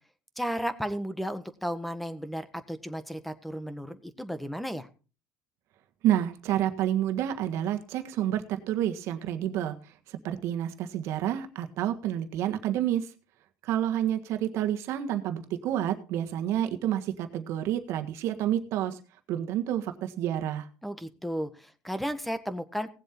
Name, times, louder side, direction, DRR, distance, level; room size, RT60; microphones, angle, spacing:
voice 1, 0.4-4.9 20.8-22.9, equal, ahead, 11 dB, 1.4 m, -34 dB
voice 2, 6.0-9.7 10.1-13.1 13.6-19.0 19.3-20.7, right 11 dB, 70° right, 7 dB, 1.6 m, -29 dB
18.0 x 7.6 x 4.5 m, 0.35 s
cardioid pair, 105°, 5 cm